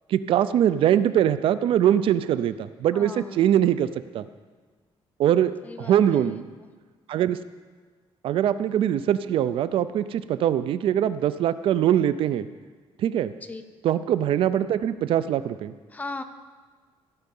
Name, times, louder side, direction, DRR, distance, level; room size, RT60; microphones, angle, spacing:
voice 1, 0.1-3.9 4.1-4.3 5.2-6.4 7.1-7.4 8.2-12.5 13.0-13.3 13.8-15.7, right 10 dB, 65° right, 14 dB, 0.4 m, -22 dB
voice 2, 2.9-3.5 5.6-6.7 13.4-13.6 15.9-16.2, left 3 dB, 15° left, 8 dB, 0.7 m, -38 dB
16.0 x 6.6 x 5.4 m, 1.5 s
cardioid pair, 155°, 10 cm